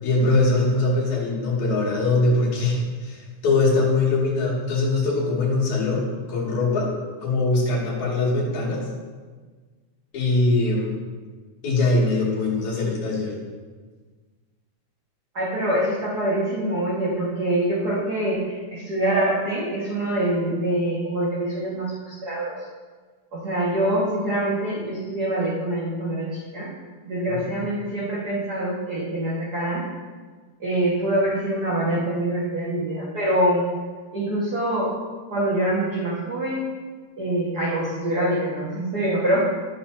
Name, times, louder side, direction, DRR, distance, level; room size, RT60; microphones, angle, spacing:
voice 1, 0.0-6.9 7.2-8.9 10.1-11.0 11.6-13.3 27.3-27.5, left 2 dB, 65° left, -4 dB, 3.5 m, -22 dB
voice 2, 15.3-22.6 23.3-26.7 27.0-29.9 30.6-33.6 34.1-34.9 35.3-36.6 37.2-39.4, right 1 dB, 40° right, -7 dB, 1.6 m, -25 dB
13.0 x 8.8 x 2.7 m, 1.5 s
omnidirectional pair, 3.6 m